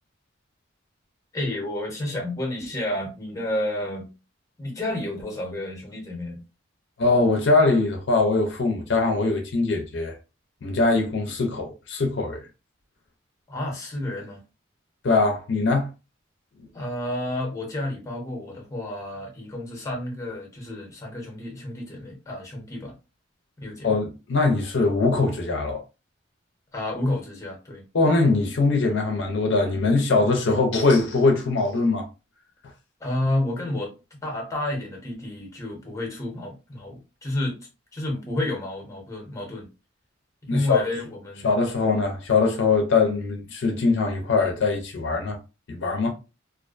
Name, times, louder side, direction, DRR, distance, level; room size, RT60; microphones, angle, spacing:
voice 1, 1.3-4.1 4.6-6.4 13.5-14.4 16.7-22.9 23.6-24.0 26.7-27.8 33.0-33.9 34.2-39.7 40.5-41.5, left 1 dB, 15° left, 0.8 m, -30 dB
voice 2, 7.0-10.2 10.6-12.4 15.0-15.9 23.8-25.8 27.9-32.1 40.5-40.8 41.4-45.4 45.7-46.1, left 3 dB, 60° left, 0.5 m, -22 dB
2.4 x 2.2 x 2.4 m
head